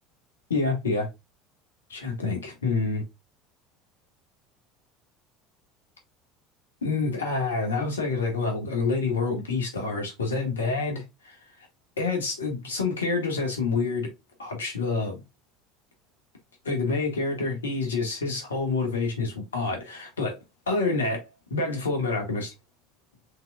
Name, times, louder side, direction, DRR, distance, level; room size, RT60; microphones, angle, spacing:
voice 1, 0.5-1.1 1.9-3.0 6.8-11.4 12.0-14.1 14.4-15.2 16.6-20.4 20.7-22.5, left 3 dB, 85° left, 1.6 m, -27 dB
5.2 x 3.9 x 2.3 m
hypercardioid pair, 70°, 0 cm